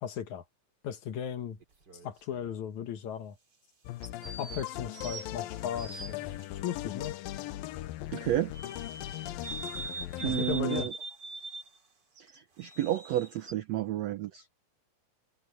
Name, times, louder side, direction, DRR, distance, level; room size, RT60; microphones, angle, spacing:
voice 1, 0.0-0.4 0.8-1.6 2.0-3.4 4.4-7.2 10.2-10.9, left 9 dB, 65° left, 2.3 m, -36 dB
sound 1, 1.6-2.6 4.0-6.5 8.5-11.8 12.2-13.5, right 3 dB, 30° right, 3.5 m, -43 dB
sound 2, 3.9-10.9, left 15 dB, 85° left, 2.6 m, -39 dB
voice 2, 8.1-8.5 10.2-10.9 12.6-14.4, right 13 dB, 80° right, 1.5 m, -31 dB
omnidirectional pair, 4.1 m